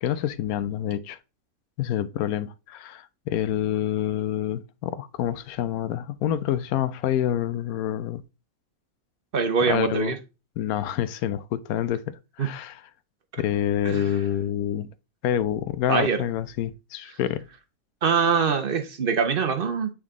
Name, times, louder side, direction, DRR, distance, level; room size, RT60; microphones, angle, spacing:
voice 1, 0.0-1.2 1.8-8.2 9.7-10.1 10.6-12.8 13.4-14.9 15.2-17.4, left 11 dB, 90° left, 1.0 m, -27 dB
voice 2, 9.3-10.2 12.4-12.5 13.8-14.1 15.9-16.2 18.0-19.9, right 6 dB, 50° right, 0.8 m, -23 dB
8.3 x 3.7 x 3.6 m
omnidirectional pair, 1.5 m